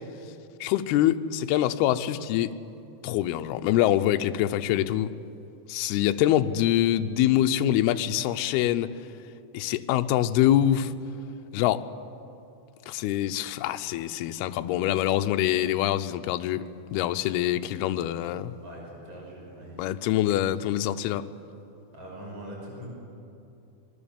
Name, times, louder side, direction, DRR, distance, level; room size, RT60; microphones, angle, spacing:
voice 1, 0.6-2.5 3.0-5.1 5.7-8.9 9.5-10.9 11.5-11.9 12.9-16.7 16.9-18.5 19.8-21.3, left 12 dB, 80° left, 9 dB, 2.5 m, -25 dB
voice 2, 18.6-19.9 21.9-22.9, right 1 dB, 30° right, -2 dB, 6.2 m, -42 dB
25.5 x 22.0 x 7.2 m, 2.7 s
omnidirectional pair, 4.9 m